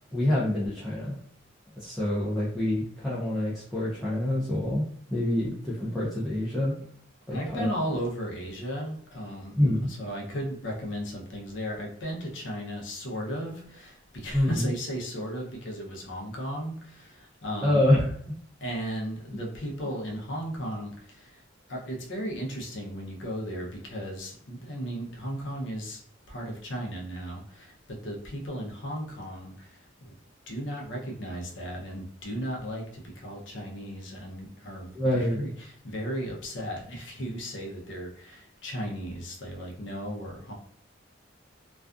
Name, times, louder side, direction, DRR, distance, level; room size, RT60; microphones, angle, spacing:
voice 1, 0.1-1.2 1.8-4.8 5.1-6.7 7.3-7.7 9.6-9.9 14.3-14.7 17.6-18.1 34.9-35.5, left 1 dB, ahead, -9 dB, 0.5 m, -26 dB
voice 2, 7.3-17.9 18.6-21.4 21.7-26.0 26.3-30.1 30.5-40.5, equal, 80° left, -1 dB, 0.7 m, -35 dB
2.4 x 2.3 x 2.4 m, 0.65 s
head